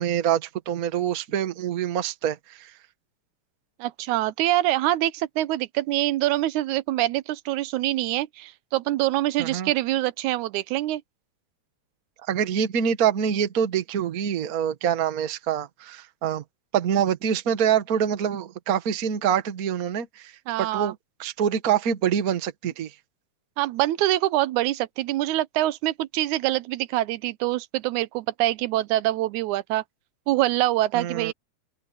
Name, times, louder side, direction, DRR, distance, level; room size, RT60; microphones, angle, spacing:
voice 1, 0.0-2.7 9.4-9.7 12.3-16.4 16.7-20.3 20.6-20.9 21.2-22.9 30.9-31.3, right 8 dB, 45° right, 1.2 m, -25 dB
voice 2, 3.8-11.0 20.5-21.0 23.6-29.8 30.3-31.3, right 15 dB, 90° right, 2.2 m, -25 dB
open air
omnidirectional pair, 3.3 m